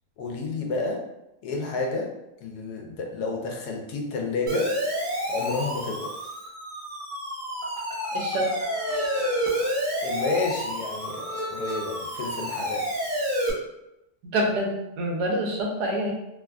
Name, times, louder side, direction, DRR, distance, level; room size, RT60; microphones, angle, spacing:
voice 1, 0.2-1.0 1.4-2.1 2.4-4.7 5.3-6.1 10.0-12.9, left 3 dB, 80° left, 1 dB, 1.1 m, -30 dB
Siren, 4.5-13.5, equal, 60° right, 0.5 m, -29 dB
voice 2, 8.1-8.5 14.3-16.1, right 1 dB, 85° right, 0 dB, 1.2 m, -26 dB
3.1 x 2.2 x 2.3 m, 0.89 s
omnidirectional pair, 1.7 m